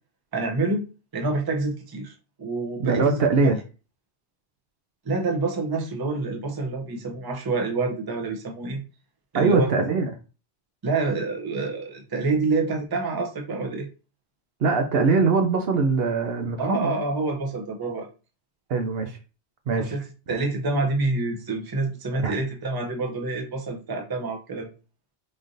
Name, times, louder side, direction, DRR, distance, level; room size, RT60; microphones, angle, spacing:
voice 1, 0.3-0.9 1.1-3.1 3.4-3.5 5.0-8.8 9.3-9.7 10.8-13.9 16.6-18.1 19.8-20.0 20.3-24.7, right 3 dB, 25° right, 0.6 m, -27 dB
voice 2, 2.8-3.6 9.3-10.1 14.6-16.9 18.7-19.2 19.7-20.0 22.2-22.3, right 4 dB, 65° right, 0.7 m, -22 dB
3.8 x 3.2 x 2.6 m
omnidirectional pair, 1.2 m